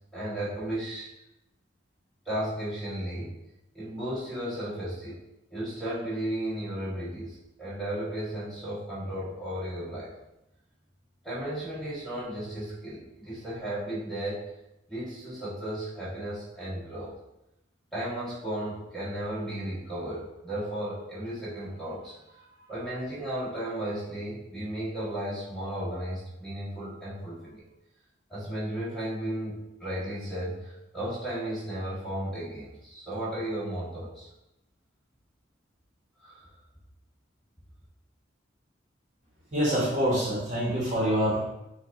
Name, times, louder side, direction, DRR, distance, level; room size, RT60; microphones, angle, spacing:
voice 1, 0.1-1.1 2.2-3.3 3.7-5.2 5.5-10.1 11.2-14.5 14.9-17.1 17.9-27.6 28.3-34.3 36.2-36.5, right 1 dB, ahead, -10 dB, 1.6 m, -34 dB
voice 2, 39.5-41.4, equal, 40° right, -5 dB, 1.2 m, -25 dB
6.0 x 2.4 x 3.7 m, 0.89 s
head